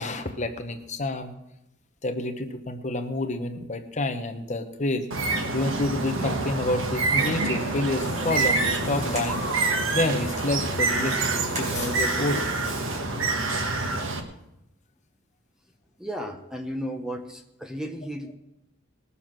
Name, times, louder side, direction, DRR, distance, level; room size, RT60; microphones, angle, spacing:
voice 1, 0.0-1.3 2.0-5.1 5.5-12.5, left 2 dB, 35° left, 7 dB, 1.0 m, -29 dB
Bird, 5.1-14.2, right 3 dB, 70° right, 1.4 m, -27 dB
sound 1, 8.0-13.0, equal, 35° right, 4.9 m, -38 dB
voice 2, 16.0-18.4, equal, 5° right, 4 dB, 0.9 m, -34 dB
20.5 x 7.0 x 6.0 m, 0.88 s
head